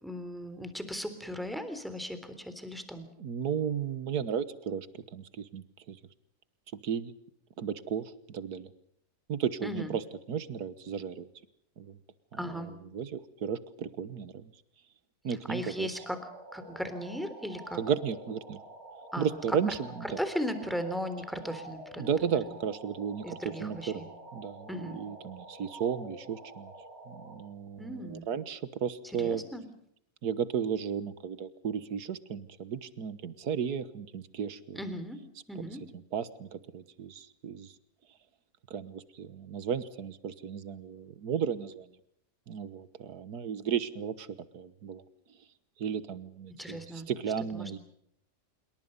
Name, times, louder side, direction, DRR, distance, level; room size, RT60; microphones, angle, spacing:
voice 1, 0.0-3.1 9.6-10.0 12.3-12.7 15.5-16.2 16.5-17.8 19.1-19.6 20.0-22.4 23.2-24.1 24.7-25.0 27.8-28.3 29.2-29.6 34.7-35.2 35.5-35.8 46.6-47.1 47.5-47.7, equal, ahead, 9 dB, 3.5 m, -37 dB
voice 2, 3.2-6.0 6.8-7.1 7.6-8.7 9.3-10.0 10.3-11.3 11.8-12.0 12.5-14.5 15.2-15.9 17.8-18.6 19.2-20.2 22.0-26.7 27.1-29.4 30.2-34.8 35.9-37.7 38.7-41.9 42.5-45.0 45.8-47.8, right 7 dB, 80° right, 14 dB, 1.8 m, -34 dB
sound 1, 15.9-27.4, right 2 dB, 65° right, 5.9 m, -48 dB
27.0 x 23.0 x 5.4 m, 0.72 s
omnidirectional pair, 1.6 m